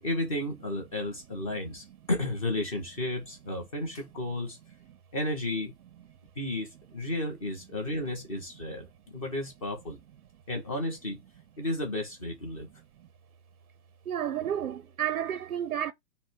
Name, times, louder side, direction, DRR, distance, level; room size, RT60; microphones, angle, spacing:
voice 1, 0.0-4.6 5.1-5.7 6.4-10.0 10.5-11.2 11.6-12.7, left 1 dB, 20° left, 0.9 m, -33 dB
voice 2, 14.1-15.9, right 10 dB, 60° right, 0.5 m, -31 dB
5.4 x 2.2 x 4.4 m
hypercardioid pair, 165°, 49 cm